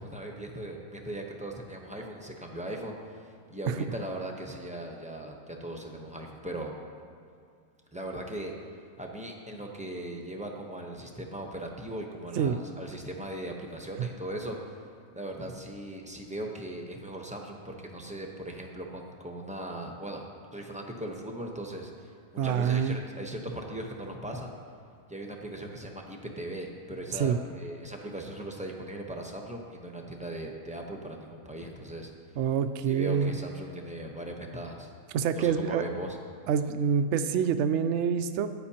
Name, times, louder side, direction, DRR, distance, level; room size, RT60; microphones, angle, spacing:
voice 1, 0.0-6.7 7.9-8.5 9.0-14.7 15.1-20.3 20.5-22.1 22.4-24.6 25.1-32.1 32.9-34.9 35.3-36.2, right 1 dB, 5° right, 0 dB, 0.6 m, -39 dB
voice 2, 22.4-23.0 27.1-27.4 32.4-33.3 35.1-35.8 36.5-38.5, right 7 dB, 65° right, 10 dB, 0.7 m, -26 dB
15.0 x 9.7 x 2.9 m, 2.4 s
omnidirectional pair, 1.6 m